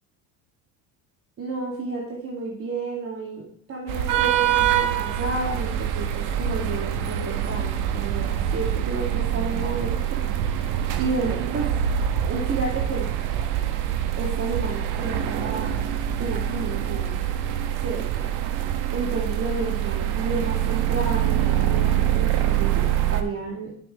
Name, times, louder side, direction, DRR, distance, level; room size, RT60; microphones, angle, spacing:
voice 1, 1.4-10.7 11.0-11.7 12.3-13.1 14.2-15.7 16.2-17.2 17.8-18.3 18.9-23.7, right 3 dB, 35° right, -2 dB, 2.3 m, -31 dB
sound 1, 3.9-23.2, right 10 dB, 75° right, 1.2 m, -25 dB
10.0 x 6.8 x 3.2 m, 0.62 s
supercardioid pair, 110°, 39 cm